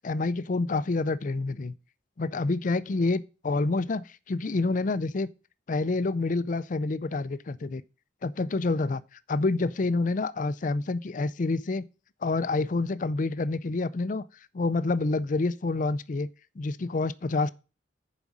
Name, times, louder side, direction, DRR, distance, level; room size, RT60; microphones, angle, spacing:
voice 1, 0.0-1.8 2.2-5.3 5.7-7.8 8.2-9.0 9.3-11.8 12.2-14.2 14.5-16.3 16.6-17.5, left 3 dB, 40° left, 0.4 m, -28 dB
7.2 x 5.1 x 7.2 m
head